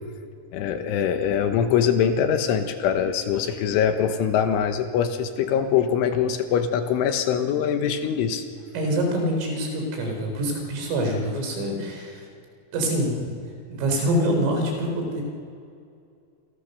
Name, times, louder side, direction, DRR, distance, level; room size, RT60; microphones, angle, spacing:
voice 1, 0.5-8.4, left 8 dB, 75° left, 7 dB, 3.5 m, -23 dB
voice 2, 8.7-12.3 12.7-13.3 13.7-15.2, right 1 dB, 75° right, 3 dB, 6.8 m, -25 dB
29.0 x 22.5 x 6.8 m, 2.4 s
omnidirectional pair, 6.0 m